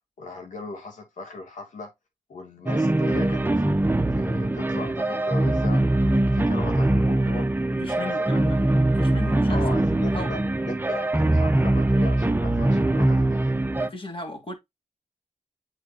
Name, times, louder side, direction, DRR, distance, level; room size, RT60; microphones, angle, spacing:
voice 1, 0.2-1.9 2.3-3.8 4.1-5.8 6.1-7.5 7.9-8.5 9.5-13.5, left 3 dB, 90° left, 2.4 m, -38 dB
sound 1, 2.7-13.9, right 1 dB, 15° right, 0.8 m, -22 dB
voice 2, 7.8-8.7 9.0-9.6 9.9-10.3 13.8-14.5, left 2 dB, 45° left, 3.0 m, -36 dB
8.3 x 4.5 x 2.8 m
cardioid pair, 45°, 13 cm